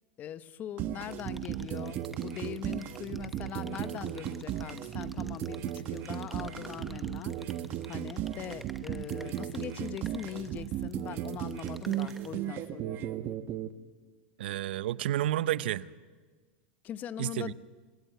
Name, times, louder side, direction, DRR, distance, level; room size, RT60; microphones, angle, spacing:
voice 1, 0.2-7.4 7.9-13.1 16.8-17.5, left 10 dB, 30° left, 0.8 m, -41 dB
sound 1, 0.8-13.7, right 11 dB, 35° right, 1.1 m, -36 dB
sound 2, 1.1-12.3, right 1 dB, 5° right, 1.0 m, -53 dB
voice 2, 14.4-15.9 17.2-17.5, right 13 dB, 75° right, 0.7 m, -30 dB
28.5 x 16.0 x 9.3 m
supercardioid pair, 140°, 6 cm